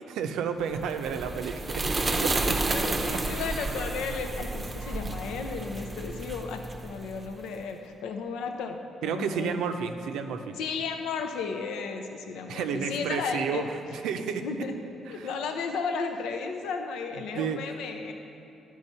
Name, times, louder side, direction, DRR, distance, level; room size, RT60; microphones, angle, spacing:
voice 1, 0.1-1.8 2.5-2.8 9.0-10.6 12.5-13.6 13.9-14.4 15.1-15.3 17.3-17.6, right 7 dB, 85° right, 7 dB, 0.5 m, -31 dB
sound 1, 0.7-7.4, right 2 dB, 25° right, 0.6 m, -31 dB
voice 2, 2.7-9.6 10.6-13.6 14.4-14.7 15.1-18.1, left 5 dB, 90° left, 5 dB, 0.6 m, -34 dB
11.5 x 4.7 x 5.5 m, 2.8 s
cardioid pair, 90°, 0 cm